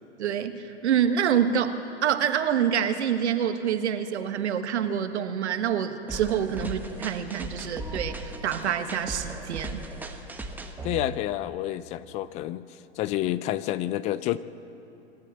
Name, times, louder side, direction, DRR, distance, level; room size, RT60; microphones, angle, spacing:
voice 1, 0.2-9.8, right 8 dB, 70° right, 8 dB, 1.6 m, -27 dB
sound 1, 6.1-11.5, right 2 dB, 5° right, 1.2 m, -37 dB
voice 2, 10.8-14.4, left 14 dB, 20° left, 16 dB, 0.4 m, -29 dB
26.0 x 13.5 x 7.7 m, 2.8 s
hypercardioid pair, 120°, 35 cm